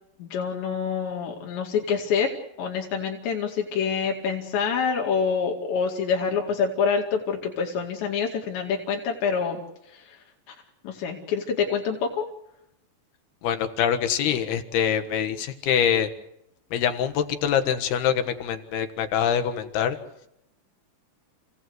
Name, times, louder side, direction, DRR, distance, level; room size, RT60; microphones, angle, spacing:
voice 1, 0.2-2.3 2.6-9.6 9.9-10.2 10.5-10.6 10.8-12.3, left 6 dB, 85° left, 0 dB, 4.6 m, -26 dB
voice 2, 13.4-16.1 16.7-20.0, left 8 dB, 70° left, 8 dB, 3.4 m, -24 dB
30.0 x 17.5 x 8.0 m, 0.82 s
omnidirectional pair, 5.0 m